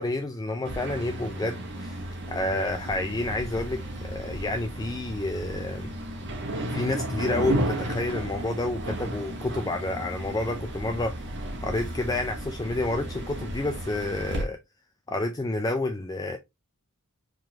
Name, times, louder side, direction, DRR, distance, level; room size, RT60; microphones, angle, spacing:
voice 1, 0.0-2.0 2.3-5.9 6.7-11.2 11.6-14.6 15.1-16.4, left 2 dB, 15° left, 0.4 m, -29 dB
sound 1, 0.6-14.4, right 1 dB, 55° right, 1.4 m, -34 dB
4.9 x 3.7 x 2.9 m
head